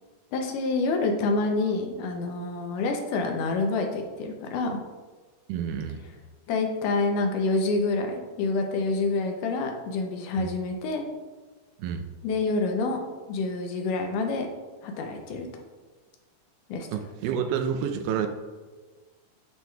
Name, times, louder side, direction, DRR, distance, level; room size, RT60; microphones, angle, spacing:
voice 1, 0.3-4.8 6.5-11.0 12.2-13.0 13.3-14.5 14.8-15.5 16.7-16.9, left 3 dB, 80° left, 3 dB, 2.2 m, -27 dB
voice 2, 5.5-6.0 10.4-10.5 11.8-12.1 16.9-18.3, right 8 dB, 85° right, 7 dB, 2.1 m, -29 dB
11.0 x 4.6 x 2.3 m, 1.3 s
omnidirectional pair, 3.7 m